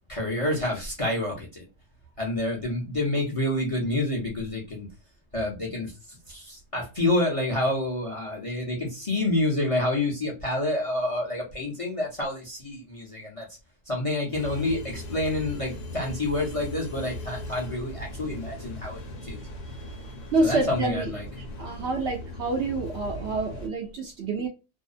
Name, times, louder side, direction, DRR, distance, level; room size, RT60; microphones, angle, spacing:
voice 1, 0.1-1.6 2.2-4.9 5.3-13.5 13.9-19.4 20.4-21.3, left 1 dB, 30° left, 0.6 m, -28 dB
sound 1, 14.3-23.7, left 1 dB, 55° left, 1.0 m, -39 dB
voice 2, 19.7-21.1 21.6-24.5, right 2 dB, 65° right, 0.7 m, -28 dB
2.7 x 2.0 x 2.4 m
omnidirectional pair, 1.4 m